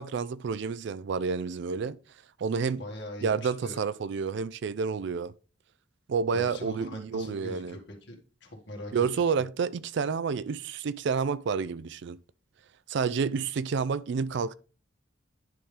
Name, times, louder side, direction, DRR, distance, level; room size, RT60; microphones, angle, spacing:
voice 1, 0.0-2.0 2.4-2.8 3.2-5.3 6.1-7.8 8.9-12.2 12.9-14.5, right 5 dB, 60° right, 0.4 m, -29 dB
voice 2, 2.8-3.8 6.3-9.1 9.4-9.5, left 1 dB, 60° left, 1.9 m, -42 dB
10.5 x 3.6 x 3.3 m
head